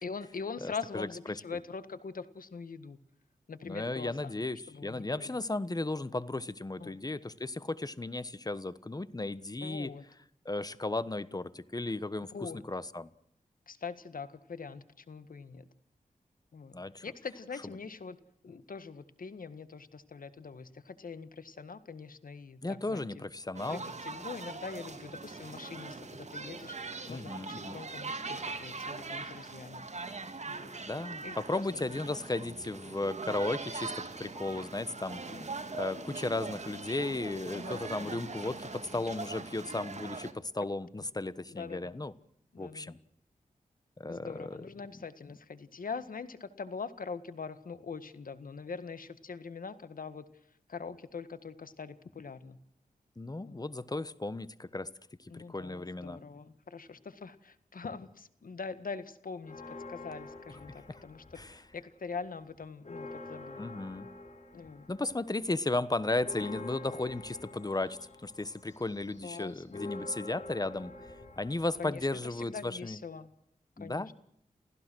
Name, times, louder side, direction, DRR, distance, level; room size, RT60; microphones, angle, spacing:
voice 1, 0.0-3.0 3.5-5.4 6.8-7.0 9.6-10.0 12.3-12.7 13.7-15.7 16.5-16.8 17.0-18.2 18.4-23.2 23.7-26.8 27.1-29.8 30.5-30.7 31.2-32.0 35.3-35.5 37.5-38.2 41.5-42.0 42.5-43.0 44.1-50.3 50.7-52.6 53.4-53.7 55.3-63.7 64.5-64.9 69.2-69.8 71.8-73.3 73.8-74.1, left 5 dB, 70° left, 1.8 m, -43 dB
voice 2, 0.6-1.1 3.7-9.9 10.4-13.1 16.7-17.0 22.6-23.8 27.1-27.8 30.8-35.2 35.7-42.1 42.6-43.0 44.0-44.6 53.2-54.9 55.2-56.2 60.9-61.0 61.4-61.5 63.6-64.1 64.9-70.9 71.4-73.0 73.8-74.1, left 2 dB, 25° left, 1.3 m, -35 dB
sound 1, 23.6-40.3, right 3 dB, 50° right, 2.5 m, -41 dB
sound 2, 59.4-61.8 62.2-72.7, left 2 dB, 50° left, 4.4 m, -47 dB
30.0 x 15.5 x 6.3 m
cardioid pair, 55°, 15 cm